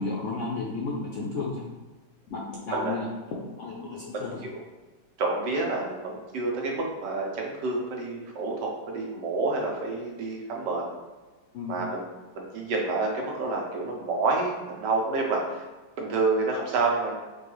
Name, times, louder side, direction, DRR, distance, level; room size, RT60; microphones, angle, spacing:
voice 1, 0.0-1.6 2.3-3.1 3.6-4.3 11.5-11.8, left 3 dB, 70° left, -4 dB, 0.7 m, -32 dB
voice 2, 5.2-10.9 11.6-12.1 12.3-15.6 16.0-17.2, right 3 dB, 85° right, 0 dB, 1.4 m, -28 dB
4.6 x 2.3 x 3.0 m, 1.2 s
omnidirectional pair, 1.8 m